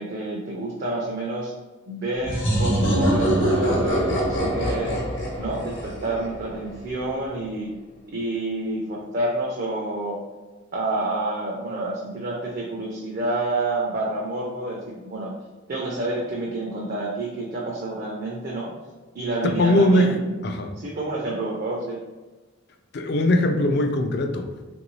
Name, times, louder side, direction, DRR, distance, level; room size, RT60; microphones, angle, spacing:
voice 1, 0.0-1.5 1.9-5.0 5.4-7.7 8.1-10.2 10.7-15.3 15.7-18.7 19.1-20.2 20.8-22.0, right 2 dB, 45° right, -3 dB, 0.4 m, -28 dB
sound 1, 2.2-6.8, right 1 dB, 75° left, 0.9 m, -24 dB
voice 2, 19.4-20.2 20.4-20.7 22.9-24.5, left 1 dB, 55° left, 5 dB, 0.3 m, -20 dB
3.0 x 2.6 x 3.0 m, 1.2 s
head